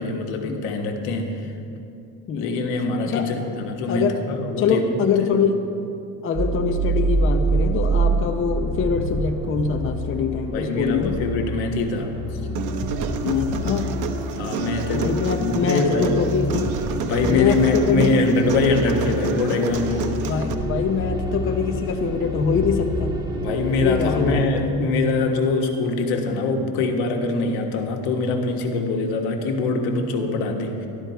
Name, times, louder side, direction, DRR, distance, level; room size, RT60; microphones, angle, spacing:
voice 1, 0.0-1.5 2.3-4.8 5.2-5.3 10.5-12.1 14.4-16.2 17.0-20.2 23.4-30.9, left 3 dB, 85° left, 3 dB, 1.6 m, -23 dB
voice 2, 2.3-2.6 3.0-3.3 3.9-4.2 4.6-5.6 6.2-11.2 13.2-14.0 14.9-16.7 17.3-18.3 20.3-23.2 23.8-24.5, left 6 dB, 35° left, 4 dB, 0.7 m, -24 dB
sound 1, 6.4-24.5, right 1 dB, 10° right, 1.4 m, -27 dB
Human voice, 12.5-20.5, right 6 dB, 55° right, 0.9 m, -30 dB
13.0 x 12.0 x 4.5 m, 2.6 s
cardioid pair, 140°, 37 cm